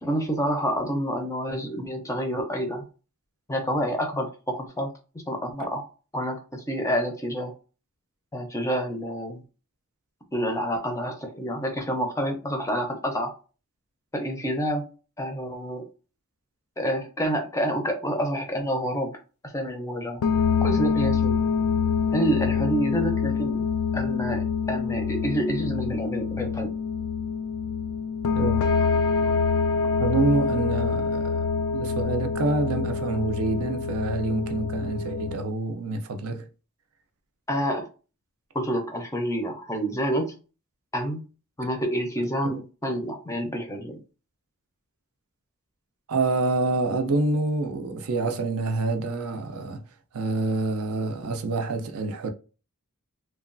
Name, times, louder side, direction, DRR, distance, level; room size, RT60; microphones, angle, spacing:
voice 1, 0.0-2.8 3.5-4.9 5.3-5.8 6.1-7.5 8.3-9.4 10.3-13.3 14.1-14.8 15.2-15.8 16.8-19.2 19.4-20.2 20.6-21.4 22.1-23.7 23.9-26.7 37.5-37.9 38.5-40.4 40.9-41.2 41.6-44.0, equal, 15° left, 0.5 m, -28 dB
sound 1, 20.2-35.4, left 5 dB, 70° left, 0.3 m, -26 dB
voice 2, 30.0-36.5 42.4-42.6 46.1-49.8 50.1-52.3, right 3 dB, 70° right, 0.5 m, -27 dB
2.9 x 2.2 x 2.5 m
head